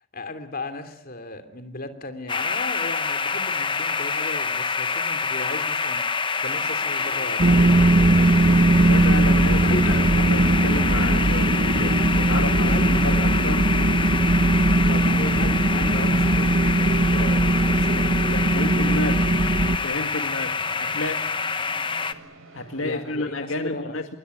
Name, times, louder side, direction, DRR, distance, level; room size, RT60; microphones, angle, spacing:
voice 1, 0.1-6.1 6.4-8.6 9.6-10.0 12.3-13.3 14.9-19.1 22.7-23.9, left 2 dB, 45° left, 8 dB, 3.1 m, -36 dB
sound 1, 2.3-22.1, left 5 dB, 25° left, 1.2 m, -26 dB
sound 2, 6.2-23.2, right 2 dB, 85° right, 6.2 m, -46 dB
sound 3, 7.4-19.8, right 2 dB, 45° right, 1.4 m, -19 dB
voice 2, 8.8-13.6 18.5-19.3 19.8-21.3 22.5-24.2, left 2 dB, 75° left, 6 dB, 2.2 m, -31 dB
26.5 x 22.0 x 9.7 m, 0.72 s
head